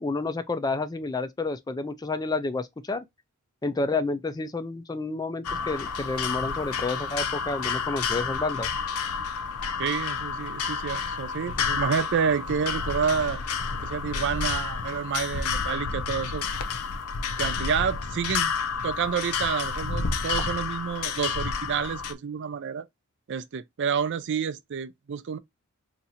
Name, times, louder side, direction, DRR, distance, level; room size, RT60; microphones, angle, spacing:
voice 1, 0.0-3.1 3.6-8.7, left 3 dB, 15° left, 0.3 m, -30 dB
sound 1, 5.4-22.1, left 5 dB, 80° left, 0.6 m, -30 dB
voice 2, 9.8-13.4 13.8-16.5 17.4-18.5 18.8-22.9 23.3-25.4, right 7 dB, 55° right, 0.4 m, -29 dB
2.7 x 2.5 x 4.1 m
head